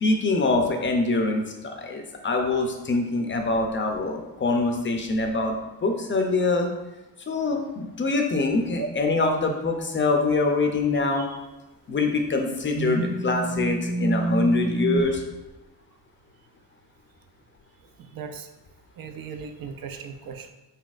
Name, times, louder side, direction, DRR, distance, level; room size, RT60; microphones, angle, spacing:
voice 1, 0.0-5.6 5.8-6.7 7.3-11.2 11.9-15.2, left 3 dB, 30° left, 4 dB, 0.5 m, -24 dB
voice 2, 11.1-11.5 18.0-18.5 19.0-20.5, right 5 dB, 60° right, 7 dB, 0.5 m, -37 dB
sound 1, 12.7-15.0, right 2 dB, 90° right, 0.8 m, -27 dB
4.1 x 3.9 x 2.4 m, 1.0 s
cardioid pair, 110°, 40 cm